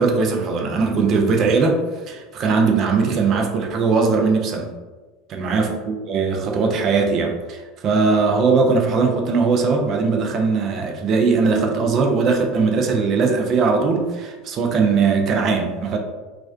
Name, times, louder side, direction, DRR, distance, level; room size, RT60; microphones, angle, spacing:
voice 1, 0.0-4.7 5.3-16.0, right 4 dB, 45° right, 2 dB, 0.4 m, -20 dB
2.4 x 2.1 x 2.4 m, 1.3 s
hypercardioid pair, 75°, 0 cm